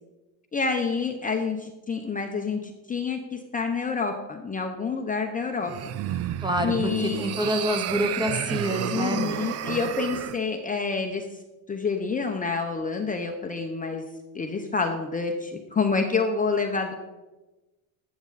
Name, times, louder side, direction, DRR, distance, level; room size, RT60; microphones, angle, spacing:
voice 1, 0.5-5.7 6.6-7.2 8.9-11.2 11.7-14.1 14.3-16.9, left 4 dB, 20° left, 3 dB, 0.7 m, -28 dB
sound 1, 5.6-10.4, right 11 dB, 35° right, 0.4 m, -31 dB
voice 2, 6.4-9.2, equal, 10° right, 6 dB, 0.9 m, -27 dB
12.5 x 7.2 x 4.1 m, 1.1 s
cardioid pair, 125°, 46 cm